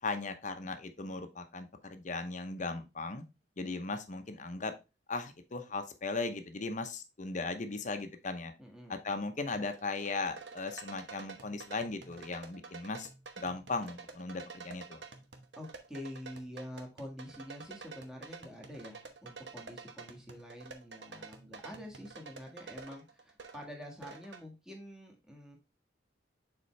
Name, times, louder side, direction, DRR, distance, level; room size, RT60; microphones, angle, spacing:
voice 1, 0.0-3.2 3.6-4.7 5.1-8.5 8.9-13.1 13.4-15.0, left 3 dB, 45° left, 8 dB, 0.8 m, -37 dB
voice 2, 8.6-9.0 15.6-25.6, equal, 5° right, 0 dB, 1.6 m, -47 dB
sound 1, 9.5-24.4, right 4 dB, 70° right, 1.0 m, -49 dB
6.8 x 4.4 x 3.3 m, 0.27 s
head